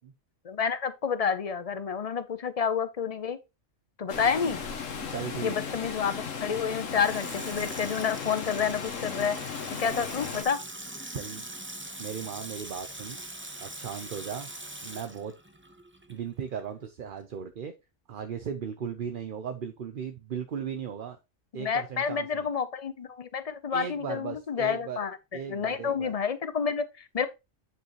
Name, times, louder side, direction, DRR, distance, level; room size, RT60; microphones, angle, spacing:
voice 1, 0.4-3.4 4.0-4.6 5.4-9.4 9.8-10.6 21.5-25.2 25.5-27.3, left 6 dB, 40° left, 0.5 m, -29 dB
Water, 4.1-10.4, left 6 dB, 70° left, 1.5 m, -36 dB
voice 2, 5.1-5.6 11.1-11.5 12.0-13.2 13.6-14.5 14.8-15.3 16.1-17.7 18.1-21.2 21.5-22.5 23.7-25.0 25.3-26.1, right 7 dB, 50° right, 0.7 m, -37 dB
Water tap faucet / Sink (filling or washing), 6.6-16.3 16.6-16.7, right 1 dB, 10° right, 0.7 m, -42 dB
9.1 x 5.5 x 3.0 m
omnidirectional pair, 1.4 m